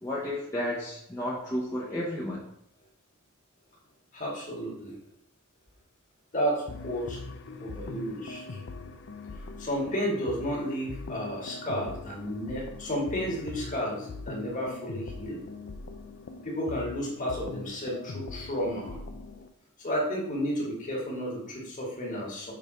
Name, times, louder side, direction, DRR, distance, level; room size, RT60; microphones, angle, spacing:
voice 1, 0.0-2.5, left 1 dB, 15° left, -6 dB, 0.9 m, -32 dB
voice 2, 4.1-5.0 6.3-7.2 7.6-8.6 9.6-15.4 16.4-19.0 19.8-22.5, equal, 35° left, -3 dB, 2.0 m, -32 dB
sound 1, 6.7-19.5, left 3 dB, 55° left, 0.5 m, -41 dB
6.7 x 3.5 x 5.0 m, 0.75 s
head